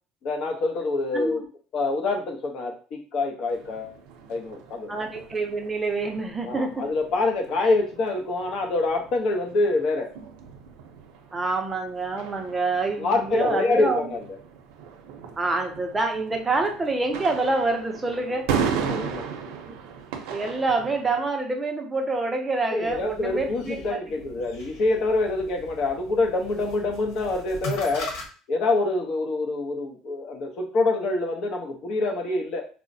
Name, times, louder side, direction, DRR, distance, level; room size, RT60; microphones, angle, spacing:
voice 1, 0.2-1.4 1.7-4.0 4.3-4.9 6.4-10.1 13.0-14.4 18.7-19.3 22.7-28.1 28.5-32.7, left 3 dB, 50° left, 1 dB, 0.8 m, -26 dB
voice 2, 1.1-1.5 4.9-6.9 11.3-14.0 15.4-18.5 19.7-19.8 20.3-24.0, right 3 dB, 15° right, 2 dB, 0.5 m, -26 dB
sound 1, 3.5-21.3, right 7 dB, 90° right, 0.6 m, -36 dB
sound 2, 22.8-28.3, left 1 dB, 75° left, 1.2 m, -40 dB
4.6 x 2.0 x 2.6 m, 0.39 s
cardioid pair, 150°, 0 cm